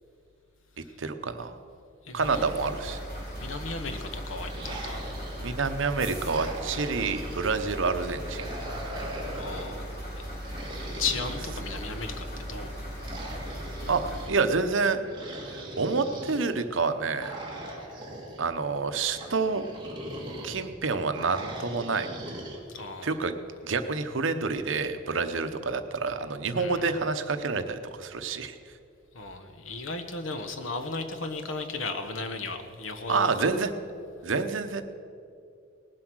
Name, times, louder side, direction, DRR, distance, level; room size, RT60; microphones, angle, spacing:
voice 1, 1.0-1.6 2.1-3.0 5.4-8.5 13.9-15.0 15.5-17.3 18.4-19.7 20.4-22.1 23.0-23.3 23.6-28.6 33.1-33.7 34.2-34.8, right 4 dB, 75° right, 9 dB, 0.8 m, -28 dB
voice 2, 2.0-2.5 3.4-5.2 9.3-9.8 10.2-10.3 11.0-12.7 15.7-15.8 22.7-23.2 26.5-26.9 29.1-33.3, left 4 dB, 80° left, 7 dB, 1.2 m, -35 dB
sound 1, 2.2-14.3, equal, 50° left, 4.0 m, -38 dB
sound 2, 4.4-5.6 6.1-7.5 8.1-9.8 10.4-12.1 13.0-14.3 15.1-16.4 17.2-18.5 19.1-20.7 21.1-22.6, right 1 dB, 25° right, 2.0 m, -40 dB
18.5 x 7.7 x 6.2 m, 2.4 s
head